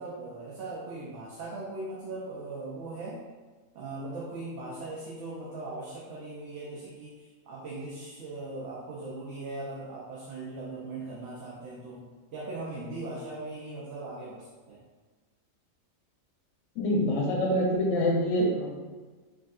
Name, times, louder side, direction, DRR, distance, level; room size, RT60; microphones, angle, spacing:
voice 1, 0.0-3.2 3.7-14.8, right 2 dB, 65° right, -5 dB, 0.9 m, -39 dB
voice 2, 16.8-18.8, equal, 65° left, -1 dB, 0.8 m, -26 dB
4.7 x 2.6 x 2.4 m, 1.4 s
omnidirectional pair, 1.4 m